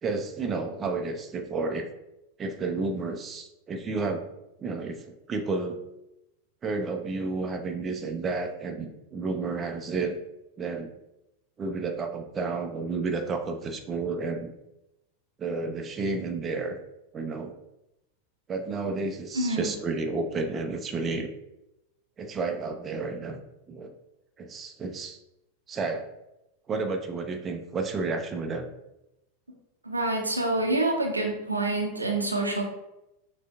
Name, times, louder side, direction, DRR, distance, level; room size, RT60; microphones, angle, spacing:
voice 1, 0.0-1.9 2.4-4.2 4.6-5.8 6.6-10.2 10.6-10.9 11.6-14.5 15.4-16.8 17.1-17.5 18.5-21.3 22.2-23.4 23.7-23.9 24.4-25.2 25.7-26.1 26.7-28.6, right 3 dB, 25° right, 4 dB, 0.5 m, -31 dB
voice 2, 19.3-19.7 29.8-32.6, right 2 dB, 85° right, 2 dB, 0.6 m, -27 dB
6.2 x 2.5 x 2.2 m, 0.90 s
figure-of-eight pair, 90°, 0 cm